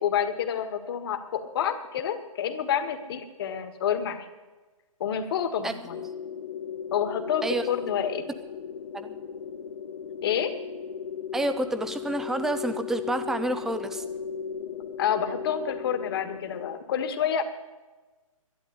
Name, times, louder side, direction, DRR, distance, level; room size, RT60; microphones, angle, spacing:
voice 1, 0.0-4.3 5.0-6.0 6.9-8.2 10.2-10.5 15.0-17.4, left 8 dB, 40° left, 9 dB, 1.6 m, -28 dB
sound 1, 5.9-16.8, left 7 dB, 70° left, 1.3 m, -37 dB
voice 2, 11.3-14.0, right 1 dB, ahead, 10 dB, 0.5 m, -28 dB
11.5 x 11.0 x 10.0 m, 1.2 s
hypercardioid pair, 155°, 18 cm